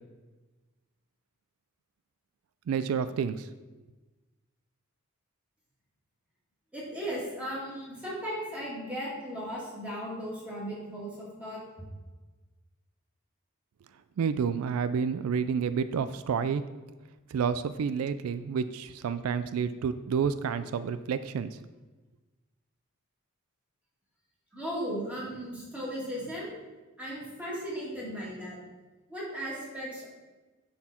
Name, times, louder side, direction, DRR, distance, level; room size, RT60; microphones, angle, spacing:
voice 1, 2.7-3.5 14.2-16.6 17.3-21.6, right 6 dB, 85° right, 13 dB, 0.3 m, -29 dB
voice 2, 6.7-11.6 24.5-26.5 27.0-28.6 29.1-30.1, equal, 5° right, -7 dB, 2.5 m, -36 dB
10.0 x 4.1 x 4.3 m, 1.2 s
head